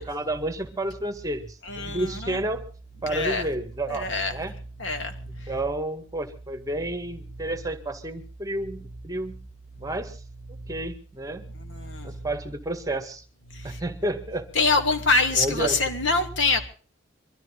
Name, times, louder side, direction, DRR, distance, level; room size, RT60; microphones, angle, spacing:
voice 1, 0.0-2.6 3.0-4.5 5.3-9.4 9.8-10.2 10.7-11.5 12.0-13.2 13.6-14.5 15.3-15.8, right 1 dB, 20° right, 1.7 m, -31 dB
voice 2, 1.7-2.4 3.0-3.5 3.9-4.3 4.8-5.1 14.5-16.6, left 3 dB, 75° left, 2.9 m, -24 dB
24.0 x 14.0 x 3.9 m
head